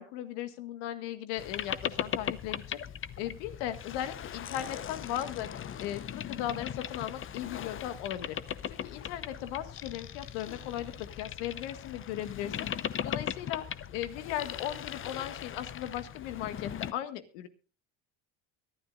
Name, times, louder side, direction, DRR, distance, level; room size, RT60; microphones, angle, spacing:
voice 1, 0.0-2.8 3.2-5.5 5.8-8.4 8.7-12.7 13.0-13.6 13.9-17.5, left 11 dB, 80° left, 10 dB, 1.7 m, -37 dB
Boat Water vehicle, 1.4-16.9, left 9 dB, 40° left, 0.8 m, -39 dB
23.5 x 12.0 x 2.4 m, 0.33 s
supercardioid pair, 85°, 34 cm